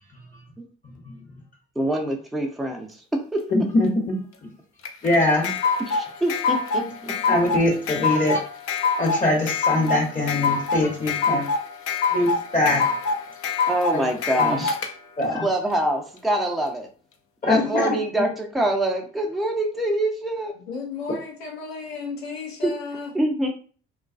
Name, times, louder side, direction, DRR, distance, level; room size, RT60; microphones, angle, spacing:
voice 1, 0.8-1.2 3.5-4.2 5.0-5.5 6.7-8.4 9.0-11.5 12.1-12.8 13.9-14.0 14.3-14.6 15.2-15.4 17.4-18.0, left 2 dB, 25° left, -1 dB, 0.9 m, -23 dB
voice 2, 1.8-3.4 5.9-7.1 13.7-14.8 15.2-16.9 17.5-20.5 22.6-22.7 23.1-23.5, right 1 dB, ahead, 2 dB, 0.5 m, -25 dB
sound 1, 4.8-14.9, left 4 dB, 45° left, 0.5 m, -24 dB
voice 3, 20.7-23.1, left 4 dB, 90° left, -2 dB, 0.7 m, -34 dB
2.3 x 2.2 x 2.4 m, 0.41 s
hypercardioid pair, 50°, 30 cm